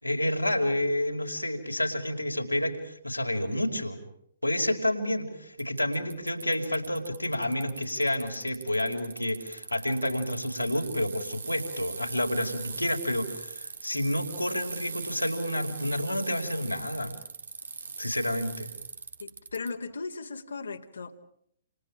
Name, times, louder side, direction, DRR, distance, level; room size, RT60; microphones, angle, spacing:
voice 1, 0.0-4.0 4.4-17.2 18.0-18.7, left 1 dB, 85° left, 3 dB, 5.0 m, -29 dB
Bicycle, 5.6-19.7, right 5 dB, 65° right, 2.4 m, -40 dB
voice 2, 19.2-21.2, left 4 dB, 70° left, 2 dB, 2.8 m, -37 dB
30.0 x 29.0 x 5.0 m, 0.70 s
figure-of-eight pair, 120°, 0 cm